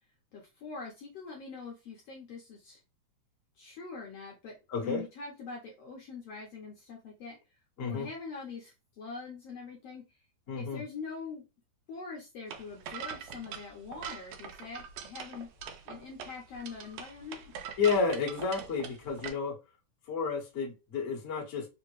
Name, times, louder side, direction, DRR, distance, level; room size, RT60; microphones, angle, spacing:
voice 1, 0.3-2.8 3.6-7.4 7.8-10.0 10.5-11.5 11.9-15.5 15.9-17.5, left 4 dB, 70° left, -2 dB, 1.5 m, -43 dB
voice 2, 4.7-5.0 7.8-8.1 10.5-10.8 17.8-19.5 20.1-21.7, left 5 dB, 50° left, -2 dB, 0.9 m, -31 dB
sound 1, 12.5-19.3, right 7 dB, 90° right, 2.1 m, -43 dB
5.0 x 2.1 x 3.1 m, 0.27 s
omnidirectional pair, 3.6 m